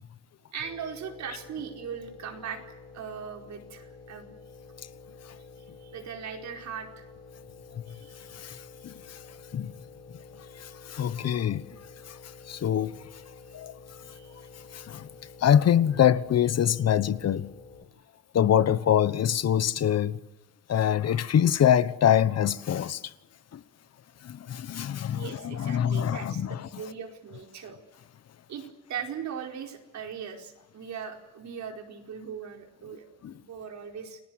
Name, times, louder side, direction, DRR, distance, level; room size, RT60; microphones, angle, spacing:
voice 1, 0.5-2.6 2.9-4.3 5.8-7.0 7.9-8.2 14.0-14.5 25.1-27.8 28.5-28.6 28.9-34.2, right 7 dB, 65° right, 4.8 m, -39 dB
sound 1, 0.6-17.8, left 4 dB, 20° left, 6.1 m, -49 dB
voice 2, 8.8-9.2 9.5-9.7 10.6-11.6 12.5-13.0 13.5-13.7 14.7-15.1 15.4-17.5 18.3-20.2 20.7-23.0 23.5-23.6 24.2-26.7 33.2-33.3, left 9 dB, 55° left, 1.2 m, -24 dB
29.5 x 18.5 x 7.9 m
cardioid pair, 90°, 30 cm